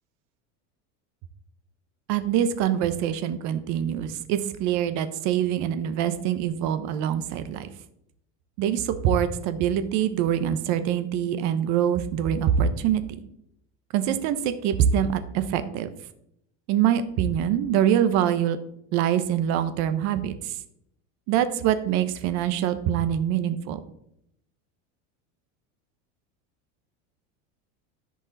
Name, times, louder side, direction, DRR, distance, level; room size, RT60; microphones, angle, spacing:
voice 1, 2.1-7.7 8.6-13.0 13.9-15.9 16.7-18.6 18.9-20.3 21.3-23.8, right 9 dB, 50° right, 11 dB, 0.9 m, -24 dB
13.5 x 5.2 x 4.0 m, 0.76 s
supercardioid pair, 155°, 37 cm